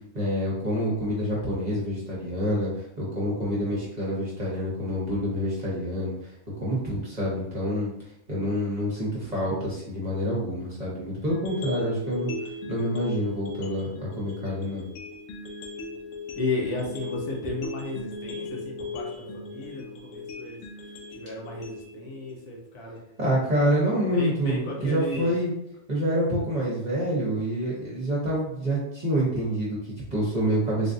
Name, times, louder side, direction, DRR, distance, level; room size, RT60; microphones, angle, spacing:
voice 1, 0.1-2.7 3.0-6.3 6.6-7.9 8.3-12.3 12.7-14.9 23.2-25.5 25.9-30.9, equal, 35° right, -7 dB, 0.8 m, -27 dB
sound 1, 11.3-23.3, left 3 dB, 70° left, 1.0 m, -38 dB
voice 2, 16.4-20.6 21.1-23.0 23.5-23.7 24.2-25.3, left 2 dB, 85° left, -1 dB, 1.3 m, -34 dB
3.7 x 2.4 x 2.6 m, 0.78 s
omnidirectional pair, 1.6 m